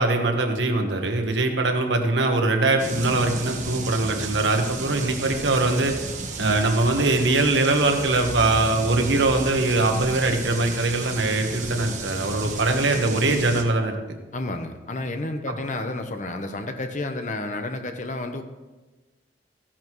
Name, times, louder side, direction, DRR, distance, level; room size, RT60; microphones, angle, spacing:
voice 1, 0.0-5.9 6.4-14.0 15.5-15.6, right 2 dB, 80° right, 4 dB, 1.4 m, -22 dB
sound 1, 2.8-13.6, right 3 dB, 40° right, 1.2 m, -33 dB
voice 2, 14.3-18.4, left 2 dB, 45° left, 6 dB, 0.9 m, -31 dB
15.0 x 10.5 x 3.1 m, 1.2 s
head